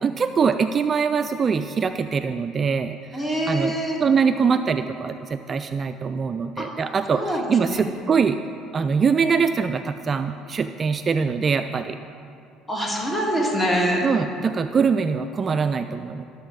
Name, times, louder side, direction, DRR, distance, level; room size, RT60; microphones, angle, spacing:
voice 1, 0.0-3.7 4.0-8.4 8.7-12.0 14.0-16.2, right 5 dB, 35° right, 9 dB, 0.3 m, -23 dB
voice 2, 3.1-4.0 6.6-6.7 7.1-7.9 12.7-14.1, equal, 15° left, -2 dB, 2.0 m, -24 dB
12.0 x 7.1 x 3.9 m, 2.5 s
supercardioid pair, 85°, 0 cm